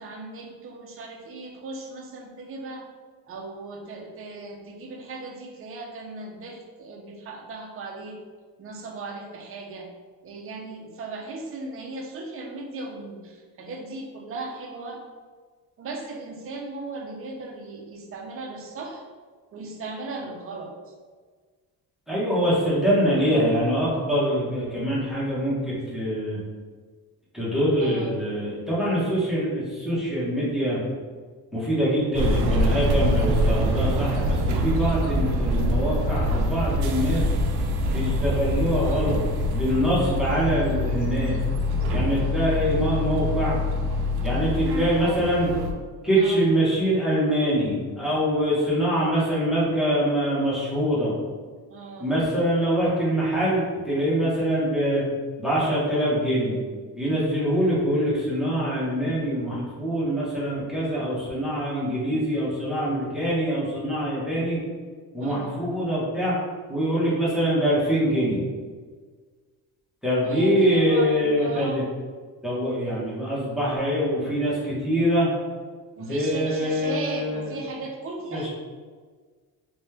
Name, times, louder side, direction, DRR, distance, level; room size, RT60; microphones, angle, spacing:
voice 1, 0.0-2.9 3.3-8.2 8.6-9.9 10.2-15.0 15.8-19.0 19.5-20.9 27.8-28.3 38.8-39.2 46.2-46.5 51.7-52.1 65.2-65.6 70.2-71.8 76.0-78.5, right 3 dB, 35° right, 0 dB, 0.6 m, -37 dB
voice 2, 22.1-26.4 27.3-30.8 31.5-37.3 37.9-39.2 39.5-41.4 41.9-43.6 44.2-45.5 46.0-51.1 52.0-55.0 55.4-56.6 57.0-64.6 65.1-66.3 66.7-68.4 70.0-71.8 72.4-75.3 76.0-77.5 78.3-78.5, equal, ahead, -8 dB, 1.1 m, -24 dB
sound 1, 32.1-45.7, left 1 dB, 80° right, 0.6 m, -25 dB
3.4 x 3.2 x 3.2 m, 1.5 s
cardioid pair, 135°, 38 cm